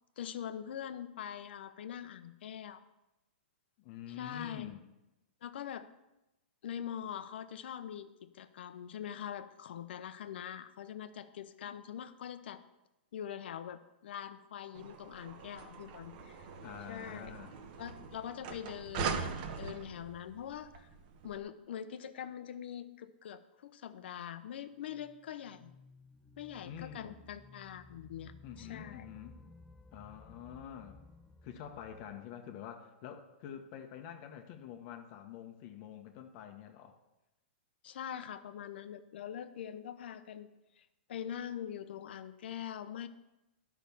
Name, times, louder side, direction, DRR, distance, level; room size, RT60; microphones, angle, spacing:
voice 1, 0.2-2.8 4.1-4.8 5.4-5.9 6.6-12.6 13.1-16.5 16.9-17.3 17.8-19.2 19.6-20.9 21.2-25.7 26.4-29.1 37.8-40.5 40.8-43.1, left 9 dB, 70° left, 11 dB, 0.8 m, -43 dB
voice 2, 3.8-4.8 16.6-17.6 26.6-27.2 28.4-29.4 29.9-31.0 31.4-37.0, left 9 dB, 45° left, 5 dB, 1.0 m, -47 dB
sound 1, 14.7-21.4, right 5 dB, 50° right, 1.2 m, -42 dB
sound 2, 24.7-32.2, left 2 dB, 10° left, 0.5 m, -57 dB
10.5 x 6.0 x 7.0 m, 0.96 s
hypercardioid pair, 140°, 6 cm